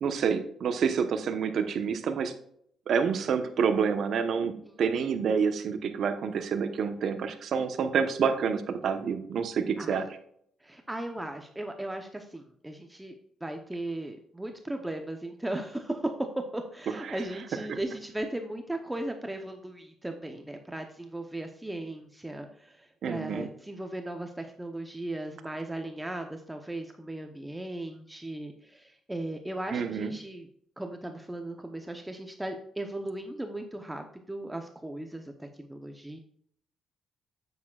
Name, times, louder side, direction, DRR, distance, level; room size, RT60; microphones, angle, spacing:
voice 1, 0.0-2.3 2.9-10.0 17.1-17.2 17.7-17.8 23.0-23.5 29.7-30.1, right 6 dB, 65° right, 8 dB, 1.1 m, -28 dB
voice 2, 9.8-10.1 10.6-13.1 13.4-30.5 30.8-36.2, right 1 dB, 10° right, 5 dB, 0.9 m, -37 dB
9.2 x 8.5 x 2.4 m, 0.67 s
cardioid pair, 90°, 0 cm